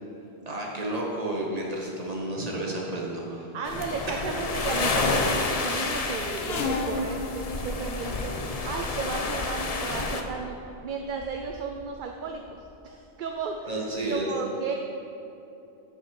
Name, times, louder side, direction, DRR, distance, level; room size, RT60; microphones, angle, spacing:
voice 1, 0.4-3.5 4.1-4.2 13.6-14.3, right 1 dB, 35° right, -2 dB, 1.5 m, -31 dB
voice 2, 3.5-10.6 10.8-12.6 12.8-14.7, right 5 dB, 55° right, 2 dB, 0.7 m, -34 dB
sound 1, 3.6-10.2, left 3 dB, 40° left, 0.7 m, -29 dB
sound 2, 6.3-8.7 9.7-9.9 10.7-10.8 11.0-11.9 12.2-12.8 13.5-13.6 13.9-14.0, left 3 dB, 70° left, 1.0 m, -34 dB
14.0 x 5.3 x 4.7 m, 3.0 s
omnidirectional pair, 1.1 m